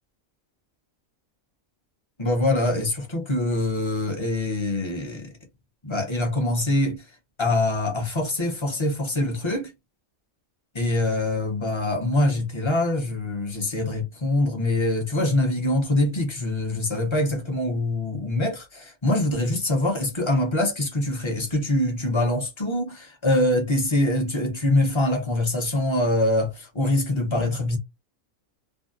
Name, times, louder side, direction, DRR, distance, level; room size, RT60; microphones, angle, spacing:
voice 1, 2.2-5.3 5.8-7.0 7.4-9.7 10.7-27.8, left 1 dB, 30° left, 0.6 m, -24 dB
2.6 x 2.3 x 2.5 m
omnidirectional pair, 1.4 m